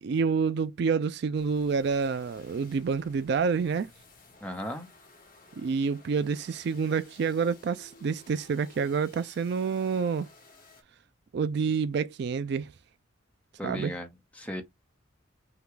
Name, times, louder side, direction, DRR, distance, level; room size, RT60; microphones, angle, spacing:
voice 1, 0.0-3.9 5.6-10.3 11.3-12.7 13.6-13.9, right 5 dB, 55° right, 0.3 m, -28 dB
sound 1, 1.3-10.8, left 3 dB, 45° left, 2.0 m, -56 dB
voice 2, 4.4-4.9 13.6-14.6, left 1 dB, 5° left, 0.9 m, -36 dB
5.7 x 2.3 x 3.8 m
head